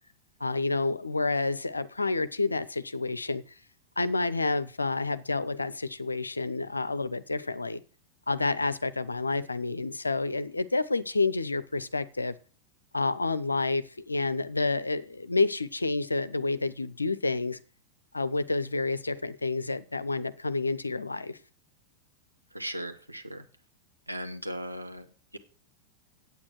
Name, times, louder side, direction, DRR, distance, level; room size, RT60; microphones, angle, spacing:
voice 1, 0.4-3.4 4.0-7.8 8.3-12.3 12.9-17.6 18.1-21.4, left 3 dB, 80° left, 0.6 m, -29 dB
voice 2, 22.5-23.4 24.1-25.0, equal, 90° right, 1.0 m, -37 dB
8.6 x 8.4 x 6.0 m
figure-of-eight pair, 90°, 0 cm